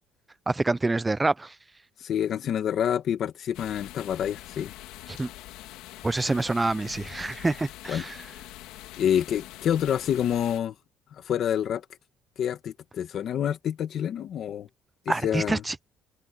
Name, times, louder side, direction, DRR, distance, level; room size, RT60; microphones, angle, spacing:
voice 1, 0.5-1.5 5.1-5.3 6.0-8.2 15.1-15.8, right 2 dB, 10° right, 0.3 m, -26 dB
voice 2, 2.0-4.7 7.9-8.0 9.0-10.7 11.2-11.8 12.4-14.7 15.0-15.6, left 9 dB, 40° left, 1.5 m, -27 dB
sound 1, 3.5-10.6, left 16 dB, 85° left, 2.1 m, -44 dB
cardioid pair, 170°, 0 cm